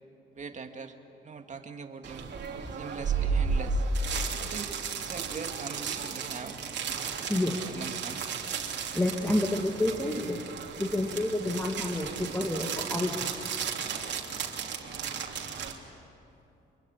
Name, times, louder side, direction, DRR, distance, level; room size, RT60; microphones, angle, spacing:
voice 1, 0.3-1.0 1.2-2.3 2.7-3.9 4.4-6.6 7.4-8.2, right 5 dB, 40° right, 5 dB, 2.2 m, -42 dB
sound 1, 2.0-15.7, right 5 dB, 60° right, 3.2 m, -34 dB
voice 2, 8.9-10.4 10.8-13.3, left 1 dB, 10° left, 1 dB, 2.1 m, -29 dB
25.5 x 23.0 x 9.8 m, 2.7 s
cardioid pair, 90°, 20 cm